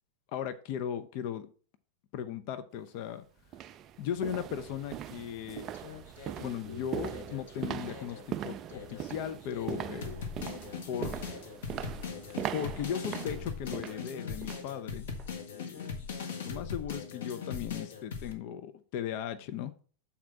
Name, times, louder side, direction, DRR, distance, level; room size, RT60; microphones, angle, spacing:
voice 1, 0.3-1.5 2.1-3.2 4.0-5.7 6.4-10.1 10.9-11.3 12.5-15.1 15.5-15.9 16.4-19.7, left 9 dB, 45° left, 10 dB, 0.6 m, -37 dB
Walk - Hallway, 2.8-2.9 3.5-14.7 15.1-15.3 15.8-15.9, right 10 dB, 30° right, 0.4 m, -41 dB
sound 1, 5.7-8.2 8.7-18.3, left 5 dB, 60° left, 1.5 m, -40 dB
7.3 x 4.2 x 5.8 m, 0.41 s
figure-of-eight pair, 90°, 0 cm